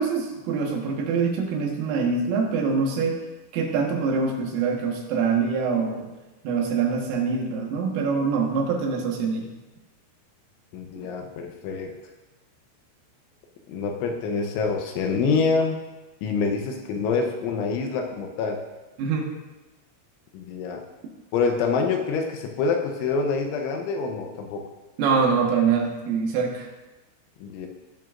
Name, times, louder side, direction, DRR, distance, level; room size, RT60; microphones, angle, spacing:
voice 1, 0.0-3.2 3.5-6.1 6.4-9.5 19.0-19.3 25.0-26.7, right 5 dB, 80° right, 0 dB, 3.9 m, -24 dB
voice 2, 10.7-11.9 13.7-15.8 16.2-18.6 20.3-20.8 21.3-24.7 27.4-27.7, left 4 dB, 80° left, 3 dB, 3.0 m, -26 dB
17.5 x 8.8 x 2.5 m, 1.1 s
omnidirectional pair, 5.9 m